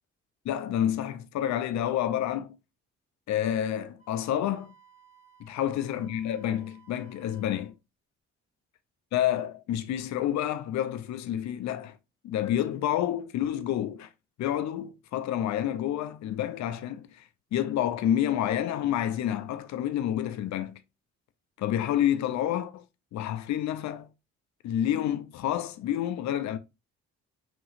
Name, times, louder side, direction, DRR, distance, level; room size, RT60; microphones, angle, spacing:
voice 1, 0.4-2.6 3.3-4.7 5.4-7.7 9.1-12.0 12.2-14.1 14.4-17.2 17.5-20.8 21.6-22.8 23.1-24.1 24.6-26.6, left 11 dB, 70° left, 0.6 m, -29 dB
Wind instrument woodwind instrument, 4.0-7.7, right 6 dB, 50° left, 1.5 m, -59 dB
6.0 x 2.8 x 2.6 m
supercardioid pair, 70°, 29 cm